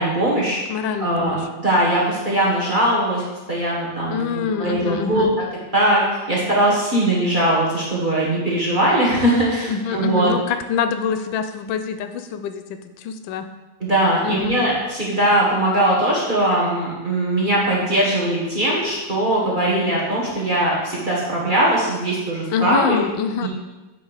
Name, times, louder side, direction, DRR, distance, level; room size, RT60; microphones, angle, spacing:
voice 1, 0.0-0.6 1.0-3.2 3.5-5.3 5.7-10.3 13.8-23.0 23.4-23.5, right 1 dB, 30° right, -5 dB, 1.4 m, -20 dB
voice 2, 0.7-1.4 4.1-5.3 9.7-13.5 14.2-14.6 22.5-23.5, left 7 dB, 85° left, 8 dB, 1.3 m, -25 dB
7.9 x 3.5 x 4.9 m, 1.1 s
omnidirectional pair, 2.0 m